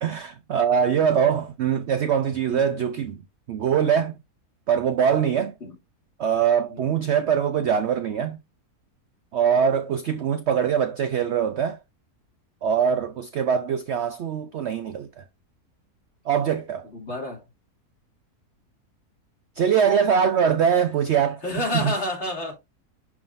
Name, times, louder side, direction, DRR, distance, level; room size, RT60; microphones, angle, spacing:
voice 1, 0.0-3.2 3.5-4.1 4.7-5.5 6.2-8.4 9.3-11.8 12.6-15.2 16.3-16.9 19.6-21.4 21.7-21.9, right 7 dB, 65° right, 0.7 m, -22 dB
voice 2, 16.8-17.4 21.4-22.5, left 1 dB, 45° left, 2.9 m, -30 dB
11.0 x 3.7 x 2.5 m
omnidirectional pair, 1.7 m